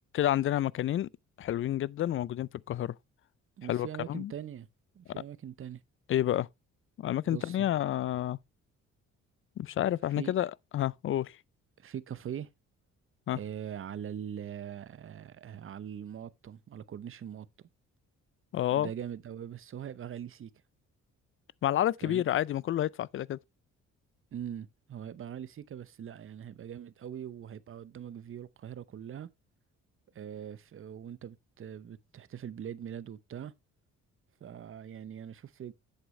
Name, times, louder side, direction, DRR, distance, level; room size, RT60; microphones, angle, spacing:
voice 1, 0.1-1.1 1.4-2.9 3.7-4.3 6.1-6.5 7.0-8.4 9.6-11.3 13.3-13.4 18.5-18.9 21.6-23.4, left 12 dB, 45° left, 0.4 m, -29 dB
voice 2, 3.6-4.7 4.9-5.8 7.3-7.8 10.2-10.3 11.8-12.5 13.3-17.5 18.7-20.5 22.0-22.2 24.3-29.3 30.1-33.5 34.4-35.7, right 9 dB, 45° right, 0.7 m, -42 dB
8.0 x 8.0 x 3.2 m
cardioid pair, 90°, 30 cm